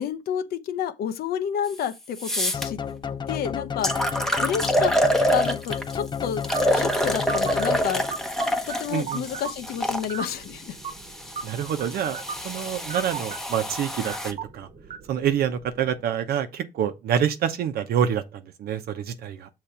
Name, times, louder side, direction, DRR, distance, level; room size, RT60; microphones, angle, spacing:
voice 1, 0.0-2.8 3.3-3.9 4.4-5.0 5.3-6.4 6.7-8.1 8.7-10.8, left 9 dB, 65° left, 0.8 m, -30 dB
sound 1, 1.7-1.8 2.2-2.7 3.3-3.4 3.8-5.9 6.4-10.1 10.9-14.3, equal, 5° left, 0.9 m, -26 dB
sound 2, 2.5-8.3, left 7 dB, 25° left, 0.5 m, -32 dB
sound 3, 6.5-16.0, right 6 dB, 40° right, 1.1 m, -39 dB
voice 2, 8.9-9.2 11.4-12.2 12.4-14.7 15.1-18.2 18.6-19.5, right 9 dB, 65° right, 0.9 m, -26 dB
6.8 x 3.3 x 5.7 m
cardioid pair, 110°, 17 cm